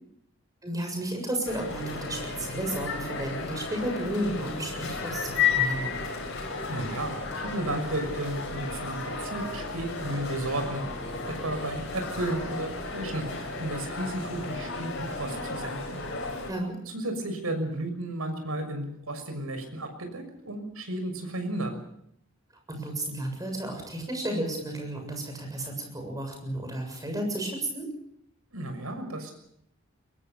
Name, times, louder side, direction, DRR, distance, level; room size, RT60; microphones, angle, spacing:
voice 1, 0.6-6.0 16.5-16.8 22.7-27.9, right 1 dB, 15° right, 3 dB, 7.3 m, -33 dB
sound 1, 1.4-16.5, left 5 dB, 55° left, 7.7 m, -33 dB
voice 2, 6.7-10.8 11.2-16.0 16.9-21.8 28.5-29.3, right 1 dB, 80° right, 6 dB, 6.3 m, -33 dB
22.5 x 22.5 x 6.9 m, 0.72 s
head